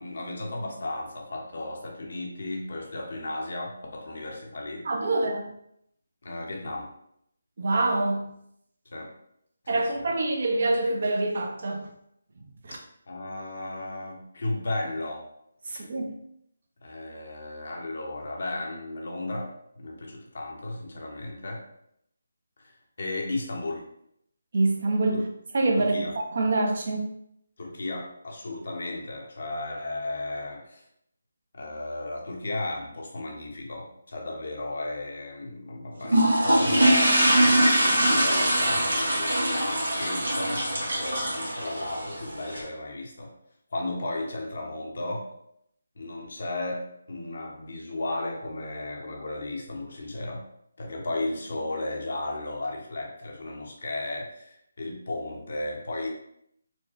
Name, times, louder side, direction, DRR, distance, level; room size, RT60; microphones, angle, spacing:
voice 1, 0.0-4.9 6.2-6.9 8.9-9.1 9.6-10.1 13.1-15.3 15.7-15.9 16.8-21.6 22.6-23.9 25.1-25.2 25.8-26.2 27.6-30.8 31.5-37.6 37.8-43.4 43.7-45.3 46.0-50.5 50.8-56.1, left 2 dB, 60° left, 1.0 m, -35 dB
voice 2, 4.8-5.5 7.6-8.3 9.7-11.9 12.6-12.8 15.7-16.1 24.5-25.3 25.5-26.0 26.3-27.1, right 2 dB, 55° right, 0.7 m, -25 dB
sound 1, 36.0-42.6, right 1 dB, 80° right, 1.2 m, -23 dB
4.3 x 2.3 x 3.0 m
figure-of-eight pair, 155°, 0 cm